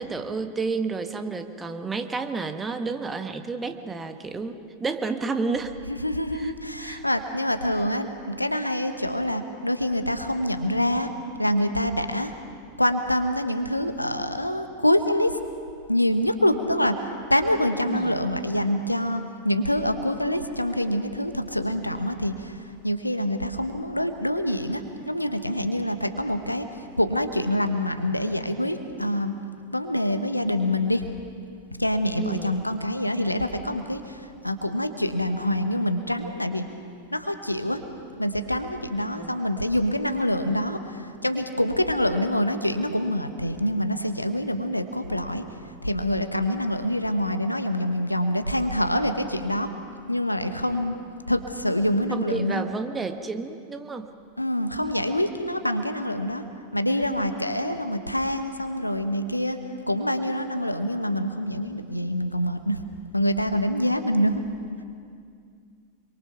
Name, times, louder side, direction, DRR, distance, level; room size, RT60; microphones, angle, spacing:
voice 1, 0.0-5.7 6.3-6.5 6.8-7.0 17.9-18.2 32.2-32.6 39.1-39.4 52.1-54.1, right 4 dB, 15° right, 7 dB, 1.3 m, -31 dB
voice 2, 5.9-11.1 11.4-12.3 12.8-15.3 15.9-26.7 27.0-29.3 29.7-31.0 31.8-36.6 37.1-37.8 38.2-45.4 45.8-49.7 50.1-51.0 51.3-52.6 54.4-56.4 56.7-59.6 59.9-62.8 63.1-64.4, left 1 dB, 85° left, 8 dB, 1.2 m, -26 dB
26.0 x 23.5 x 5.9 m, 2.3 s
figure-of-eight pair, 90°, 0 cm